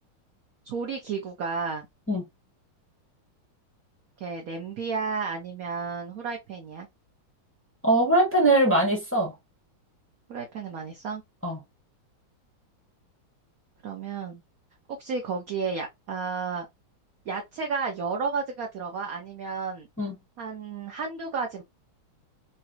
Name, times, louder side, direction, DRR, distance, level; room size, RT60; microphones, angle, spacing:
voice 1, 0.6-1.9 4.2-6.9 10.3-11.2 13.8-14.4 14.9-16.7 17.3-19.9 20.4-21.6, right 5 dB, 65° right, 0.9 m, -32 dB
voice 2, 7.8-9.3 11.4-11.6 20.0-20.2, right 1 dB, 10° left, 0.7 m, -21 dB
4.0 x 2.3 x 2.6 m
omnidirectional pair, 2.3 m